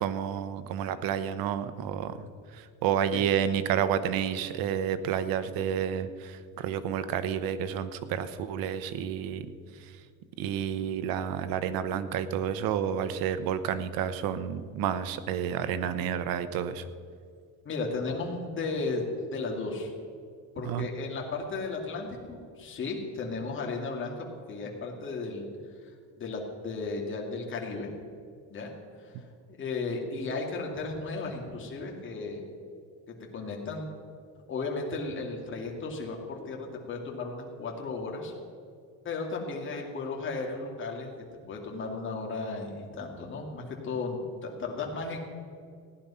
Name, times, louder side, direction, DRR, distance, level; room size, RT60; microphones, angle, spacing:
voice 1, 0.0-2.3 2.5-9.5 9.8-9.9 10.4-16.8 20.6-20.9, right 9 dB, 70° right, 12 dB, 1.0 m, -30 dB
voice 2, 17.6-19.9 20.6-25.5 26.2-27.9 28.5-28.7 29.0-29.2 29.5-32.4 33.3-33.9 34.5-38.3 39.0-41.1 41.5-45.2, left 3 dB, 35° left, 0 dB, 2.5 m, -35 dB
15.5 x 10.5 x 5.7 m, 2.3 s
cardioid pair, 135°, 36 cm